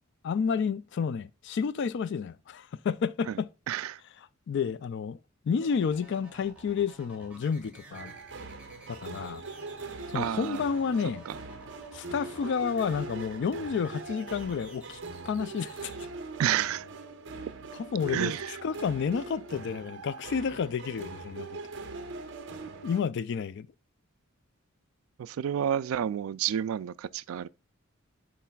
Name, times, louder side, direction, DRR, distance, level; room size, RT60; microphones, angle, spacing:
voice 1, 0.2-3.5 4.5-5.2 5.4-8.1 8.9-9.4 10.1-11.2 11.9-15.0 15.3-15.9 17.7-21.6 22.8-23.7, left 6 dB, 55° left, 0.3 m, -30 dB
voice 2, 3.7-4.0 10.1-10.6 11.3-11.4 16.4-16.9 18.1-18.5 25.2-27.5, right 10 dB, 75° right, 0.3 m, -30 dB
sound 1, 5.6-16.1, right 2 dB, 5° right, 1.8 m, -52 dB
sound 2, 7.9-23.0, right 3 dB, 60° right, 0.8 m, -42 dB
10.0 x 4.1 x 2.3 m
head